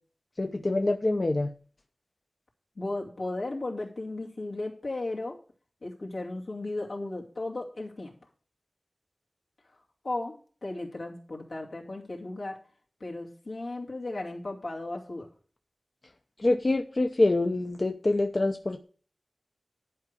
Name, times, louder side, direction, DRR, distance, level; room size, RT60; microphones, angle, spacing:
voice 1, 0.4-1.5 16.4-18.8, left 2 dB, 45° left, 5 dB, 0.7 m, -25 dB
voice 2, 2.8-5.4 5.8-8.1 10.0-12.6 13.0-15.3, left 2 dB, 80° left, -1 dB, 2.5 m, -35 dB
11.0 x 4.9 x 6.6 m, 0.42 s
wide cardioid pair, 75°, 0 cm